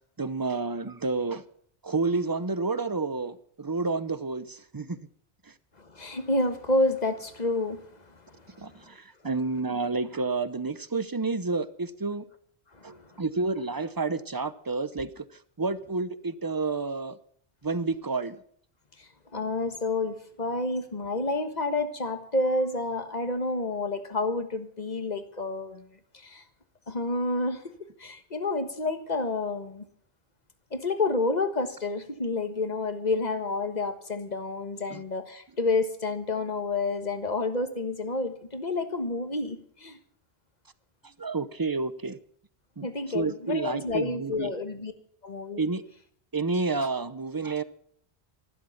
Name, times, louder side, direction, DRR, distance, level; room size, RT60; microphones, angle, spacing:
voice 1, 0.2-1.4 1.8-5.0 5.4-5.5 8.6-12.3 12.8-15.3 15.6-17.2 17.6-18.4 34.9-35.0 41.0-42.2 42.8-42.9 43.1-44.5 45.6-45.8 46.3-47.6, right 3 dB, 25° right, 0.6 m, -30 dB
voice 2, 5.8-9.0 12.7-13.2 19.0-26.4 26.9-29.8 30.7-40.0 42.8-44.9 45.2-45.6, left 2 dB, 45° left, 1.5 m, -30 dB
14.0 x 12.0 x 7.1 m
omnidirectional pair, 1.1 m